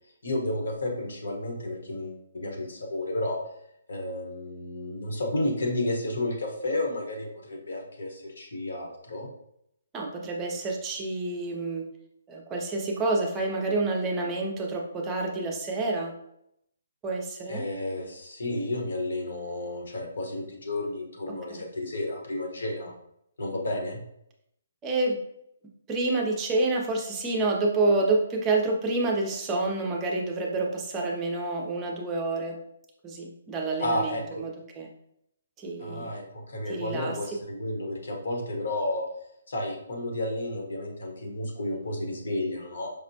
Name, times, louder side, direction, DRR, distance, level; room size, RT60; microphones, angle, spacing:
voice 1, 0.2-3.4 3.9-9.3 17.5-22.9 23.4-24.0 33.8-34.2 35.8-39.1 39.5-42.9, left 1 dB, 75° left, 1 dB, 1.1 m, -32 dB
voice 2, 9.9-11.9 12.3-16.1 17.0-17.6 21.5-21.6 24.8-25.2 25.9-32.6 33.0-34.9 35.6-36.1 36.7-37.1, right 2 dB, 10° right, -1 dB, 0.5 m, -28 dB
5.1 x 2.1 x 2.7 m, 0.74 s
hypercardioid pair, 170°, 0 cm